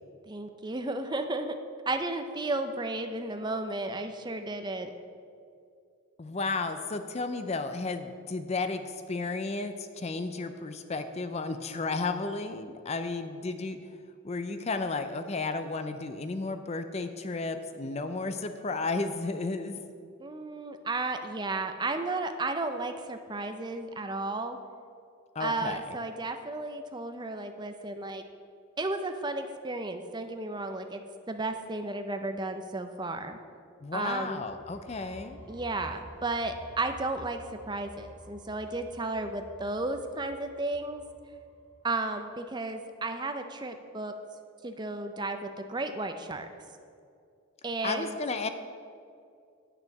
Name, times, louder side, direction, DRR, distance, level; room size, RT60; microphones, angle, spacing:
voice 1, 0.2-1.6 1.9-4.9 20.2-24.6 25.4-28.2 28.8-33.4 33.9-34.4 35.5-41.0 41.8-44.1 44.6-46.5 47.6-48.2, right 2 dB, 20° right, 7 dB, 0.5 m, -33 dB
voice 2, 6.2-13.8 14.2-19.8 25.3-25.9 33.8-35.4 47.8-48.5, left 3 dB, 30° left, 9 dB, 0.4 m, -33 dB
sound 1, 34.3-41.9, equal, 5° left, 2.2 m, -51 dB
8.5 x 6.8 x 7.1 m, 2.4 s
head